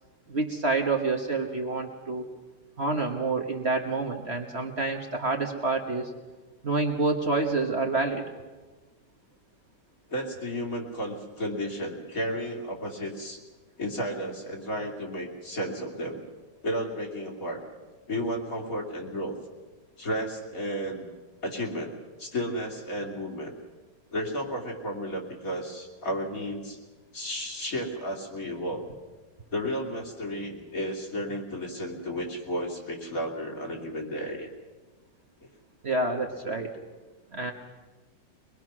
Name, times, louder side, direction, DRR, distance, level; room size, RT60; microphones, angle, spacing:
voice 1, 0.3-2.2 2.8-6.1 6.6-8.2 35.8-36.8 37.3-37.5, right 3 dB, 40° right, 3 dB, 1.5 m, -28 dB
voice 2, 10.1-13.4 13.8-16.2 16.6-17.6 18.1-19.4 20.0-21.1 21.4-21.9 22.2-23.5 24.1-26.8 27.1-28.9 29.5-34.5, equal, 50° left, 0 dB, 3.2 m, -33 dB
23.5 x 21.0 x 6.1 m, 1.3 s
omnidirectional pair, 1.9 m